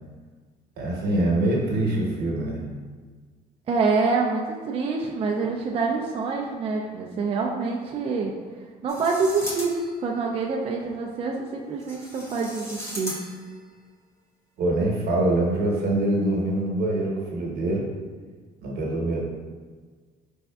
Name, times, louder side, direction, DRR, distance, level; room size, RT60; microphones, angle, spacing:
voice 1, 0.8-2.6 14.6-17.8 18.6-19.2, right 1 dB, 70° right, -2 dB, 1.0 m, -24 dB
voice 2, 3.7-8.3 8.8-9.7 10.0-13.2, right 4 dB, 35° right, 0 dB, 0.4 m, -26 dB
sound 1, 8.9-10.1 11.8-13.6, equal, 15° left, 0.7 m, -37 dB
4.0 x 3.4 x 2.3 m, 1.5 s
cardioid pair, 110°, 17 cm